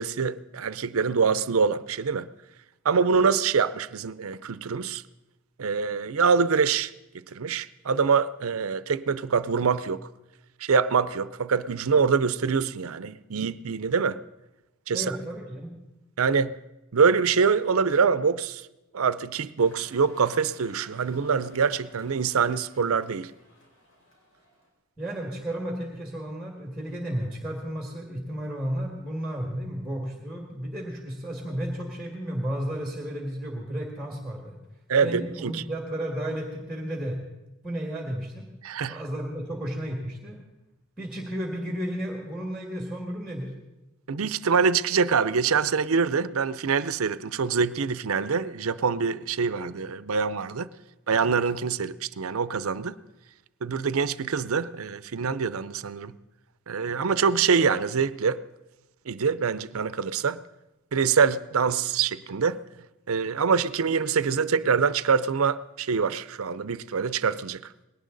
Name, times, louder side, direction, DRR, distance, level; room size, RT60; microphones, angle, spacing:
voice 1, 0.0-2.3 2.8-5.0 5.6-6.9 7.3-10.1 10.6-14.2 14.9-15.1 16.2-16.5 16.9-18.6 18.9-23.3 34.9-35.6 38.6-39.0 44.1-50.7 51.1-53.0 53.6-56.1 56.7-58.4 59.1-60.4 60.9-62.6 63.1-67.7, right 5 dB, 85° right, 0.6 m, -25 dB
voice 2, 14.9-15.7 25.0-34.6 35.0-37.2 37.6-38.5 38.9-40.4 41.0-43.5, equal, ahead, 1.9 m, -33 dB
sound 1, 19.6-24.7, left 1 dB, 65° left, 4.2 m, -55 dB
20.0 x 17.5 x 4.0 m
head